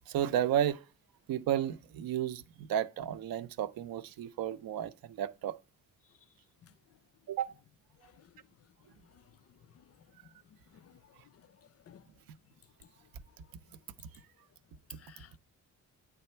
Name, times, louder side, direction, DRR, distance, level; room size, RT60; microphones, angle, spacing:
voice 1, 0.1-0.8 1.3-5.6 7.3-7.5, right 10 dB, 85° right, 0.6 m, -32 dB
voice 2, 10.7-11.5 11.9-12.0 14.9-15.4, left 9 dB, 45° left, 0.4 m, -58 dB
9.0 x 3.4 x 4.3 m
cardioid pair, 95°, 34 cm